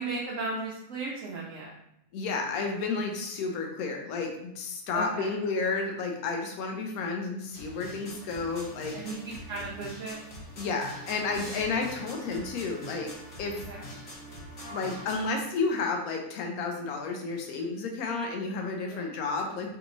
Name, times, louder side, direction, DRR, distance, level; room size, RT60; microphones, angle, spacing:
voice 1, 0.0-1.7 4.9-5.3 8.9-10.2 13.7-13.9 18.9-19.1, right 3 dB, 70° right, -3 dB, 0.9 m, -36 dB
voice 2, 2.1-8.9 10.6-13.1 13.4-13.6 14.7-19.8, left 4 dB, 80° left, 2 dB, 1.1 m, -31 dB
sound 1, 7.5-15.3, equal, 55° left, 1.3 m, -43 dB
3.4 x 3.0 x 2.5 m, 0.79 s
omnidirectional pair, 1.5 m